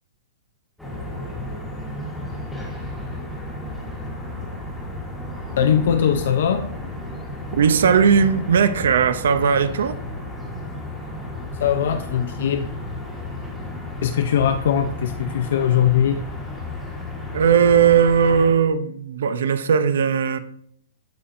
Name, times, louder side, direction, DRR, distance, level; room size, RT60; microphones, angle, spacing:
sound 1, 0.8-18.5, left 1 dB, ahead, 1.1 m, -33 dB
voice 1, 5.6-6.7 11.6-12.7 14.0-16.2, left 9 dB, 60° left, 0.5 m, -20 dB
voice 2, 7.5-9.9 17.3-20.4, right 7 dB, 75° right, 0.5 m, -18 dB
12.5 x 4.2 x 2.5 m
hypercardioid pair, 175°, 0 cm